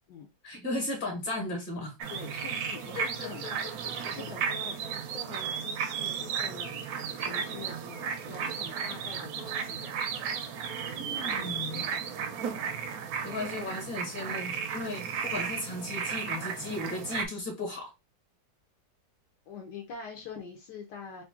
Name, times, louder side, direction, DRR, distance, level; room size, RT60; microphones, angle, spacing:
voice 1, 0.4-2.0 2.9-3.7 11.0-11.8 13.2-17.9, left 2 dB, 30° left, 2 dB, 1.3 m, -36 dB
sound 1, 0.7-0.8 3.3-4.3 6.9-8.6 10.8-14.3 14.8-15.2, right 3 dB, 35° right, 0.6 m, -52 dB
sound 2, 2.0-17.3, right 7 dB, 75° right, 0.9 m, -34 dB
voice 2, 2.1-3.6 4.0-6.8 7.2-9.9 16.6-16.7 19.5-21.2, left 5 dB, 70° left, 1 dB, 1.2 m, -45 dB
3.1 x 2.5 x 3.6 m, 0.24 s
omnidirectional pair, 2.0 m